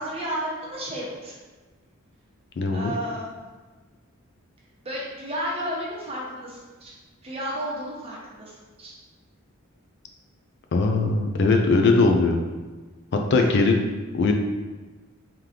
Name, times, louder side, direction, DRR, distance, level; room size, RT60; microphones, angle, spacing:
voice 1, 0.0-1.4 2.7-3.3 4.8-6.9 7.2-8.9 13.4-13.5, equal, 25° right, -5 dB, 0.9 m, -32 dB
voice 2, 2.6-2.9 10.7-12.4 13.3-13.8 14.1-14.3, left 3 dB, 55° left, 3 dB, 0.4 m, -20 dB
3.7 x 2.9 x 3.2 m, 1.3 s
head